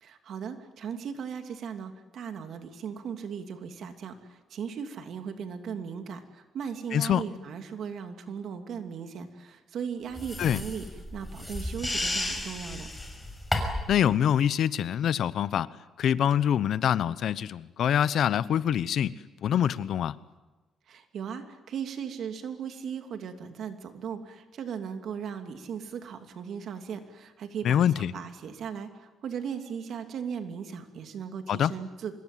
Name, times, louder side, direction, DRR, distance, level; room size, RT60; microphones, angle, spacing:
voice 1, 0.0-10.9 11.1-12.9 20.9-32.1, right 7 dB, 65° right, 2.9 m, -37 dB
voice 2, 6.9-7.2 10.4-10.6 13.9-15.7 16.0-19.1 19.4-20.2 27.6-28.1 31.5-31.7, left 9 dB, 70° left, 0.9 m, -25 dB
sound 1, 10.2-14.0, left 1 dB, 10° left, 6.1 m, -33 dB
25.5 x 21.5 x 9.3 m
cardioid pair, 90°, 0 cm